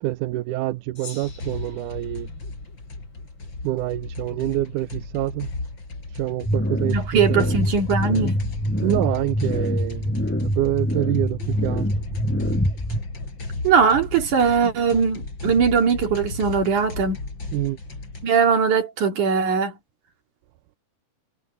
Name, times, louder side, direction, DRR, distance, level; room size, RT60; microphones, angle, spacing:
voice 1, 0.0-2.3 3.6-5.5 6.1-7.5 8.8-10.1 10.4-11.9 17.5-17.8, right 16 dB, 90° right, 2.1 m, -26 dB
Gong, 1.0-3.6, left 4 dB, 55° left, 7.1 m, -46 dB
sound 1, 1.2-18.3, left 3 dB, 35° left, 6.1 m, -35 dB
sound 2, 6.4-13.0, equal, 5° left, 5.6 m, -25 dB
voice 2, 6.8-8.4 13.6-17.2 18.2-19.8, right 6 dB, 75° right, 4.4 m, -20 dB
omnidirectional pair, 3.6 m